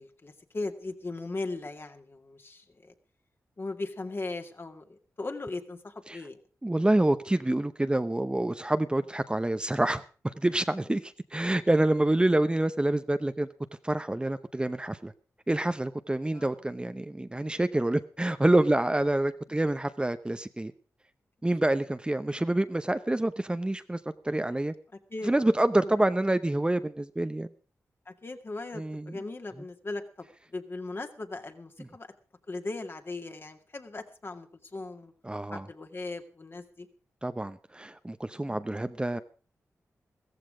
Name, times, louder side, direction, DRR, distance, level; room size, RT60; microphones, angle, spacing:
voice 1, 0.0-2.9 3.6-6.4 16.3-16.5 25.1-25.3 25.8-25.9 28.1-30.3 30.5-32.1 32.5-35.1 35.5-36.9 38.5-38.6, left 2 dB, 40° left, 6 dB, 2.1 m, -38 dB
voice 2, 6.6-13.5 13.8-15.1 15.5-20.7 21.4-24.0 24.2-24.7 25.2-27.5 28.7-29.2 31.8-31.9 35.2-35.7 37.2-39.2, right 1 dB, 15° right, 10 dB, 0.8 m, -27 dB
14.5 x 14.5 x 5.0 m, 0.38 s
cardioid pair, 60°, 6 cm